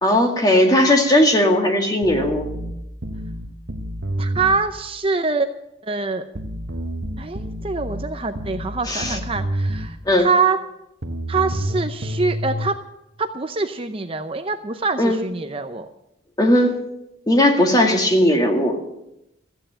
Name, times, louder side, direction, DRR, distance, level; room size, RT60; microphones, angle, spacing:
voice 1, 0.0-2.5 8.9-9.2 10.1-10.3 15.0-15.2 16.4-16.8 17.3-18.8, left 1 dB, 20° left, 3 dB, 2.0 m, -17 dB
sound 1, 2.0-4.6 6.4-10.0 11.0-12.7, equal, 60° right, 1.2 m, -28 dB
voice 2, 4.2-5.5 5.8-6.2 7.2-10.6 11.3-12.8 13.2-15.9, right 4 dB, 30° right, 8 dB, 0.6 m, -24 dB
15.0 x 9.1 x 8.8 m, 0.85 s
head